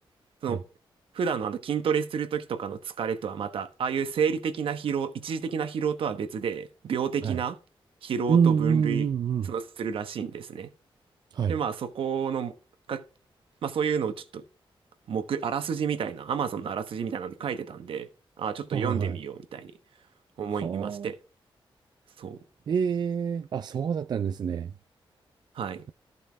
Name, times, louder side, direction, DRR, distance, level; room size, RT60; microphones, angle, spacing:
voice 1, 1.1-7.6 8.0-9.1 9.4-10.7 11.5-12.5 12.9-13.0 13.6-14.4 15.1-18.1 18.4-19.7 20.4-21.2 22.2-22.4 25.5-25.9, right 7 dB, 80° right, 1.1 m, -30 dB
voice 2, 8.3-9.5 11.3-11.6 18.7-19.2 20.5-21.1 22.7-24.7, right 7 dB, 50° right, 0.4 m, -26 dB
14.0 x 5.6 x 3.5 m
wide cardioid pair, 180°, 9 cm